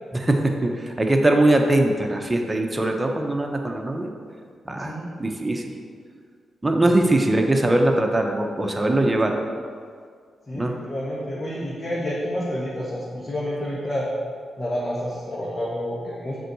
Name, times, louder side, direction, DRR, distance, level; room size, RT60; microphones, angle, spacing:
voice 1, 0.2-4.1 4.6-4.9 5.2-5.7 6.6-9.4 10.5-10.7, right 1 dB, 20° right, 2 dB, 1.1 m, -21 dB
voice 2, 4.8-5.1 6.8-6.9 10.5-14.1 14.6-16.4, equal, 35° left, -6 dB, 1.7 m, -29 dB
6.6 x 4.7 x 6.3 m, 2.1 s
hypercardioid pair, 40°, 0 cm